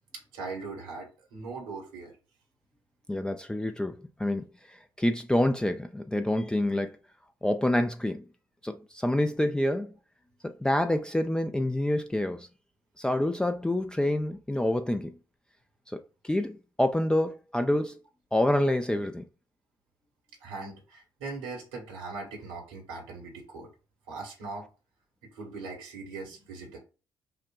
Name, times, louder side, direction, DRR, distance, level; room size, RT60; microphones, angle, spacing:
voice 1, 0.3-2.2 20.4-23.7 24.1-24.7 25.3-26.8, right 3 dB, 70° right, 1.3 m, -40 dB
voice 2, 3.1-7.0 7.4-8.2 8.6-9.9 10.4-12.5 13.0-15.2 15.9-18.0 18.3-19.2, left 1 dB, 10° left, 0.4 m, -27 dB
5.7 x 2.2 x 2.5 m
figure-of-eight pair, 45°, 11 cm